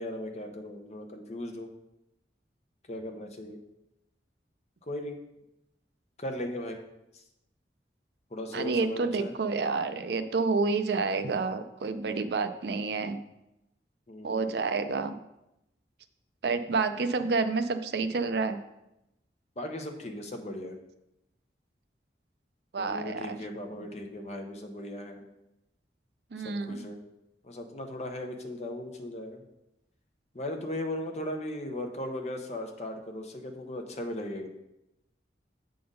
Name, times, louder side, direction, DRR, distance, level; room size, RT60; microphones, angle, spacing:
voice 1, 0.0-1.7 2.9-3.6 4.9-5.2 6.2-6.8 7.1-7.2 8.3-9.3 14.1-14.5 19.6-20.8 22.8-25.2 26.4-27.0 27.4-29.4 30.3-34.5, left 1 dB, 40° left, 3 dB, 0.8 m, -37 dB
voice 2, 8.5-13.2 14.2-15.2 16.4-18.6 22.7-23.4 26.3-26.9, right 4 dB, 65° right, 9 dB, 0.5 m, -29 dB
7.6 x 3.8 x 5.4 m, 0.89 s
head